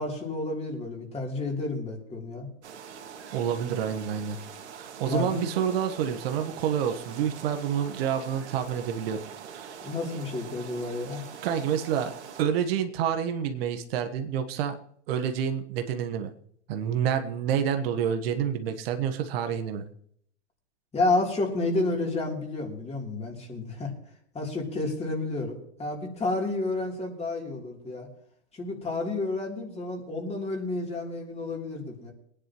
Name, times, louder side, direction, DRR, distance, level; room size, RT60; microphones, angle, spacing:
voice 1, 0.0-2.5 5.1-5.4 9.8-11.2 20.9-23.9 24.3-28.1 28.5-32.1, left 2 dB, 20° left, 0 dB, 3.3 m, -30 dB
sound 1, 2.6-12.5, right 7 dB, 75° right, 2.0 m, -43 dB
voice 2, 3.3-4.4 4.7-9.2 9.5-9.8 11.4-12.1 12.4-14.7 15.1-16.3 16.7-19.8, right 8 dB, 60° right, 6 dB, 1.3 m, -28 dB
22.0 x 10.0 x 3.1 m, 0.66 s
hypercardioid pair, 100°, 34 cm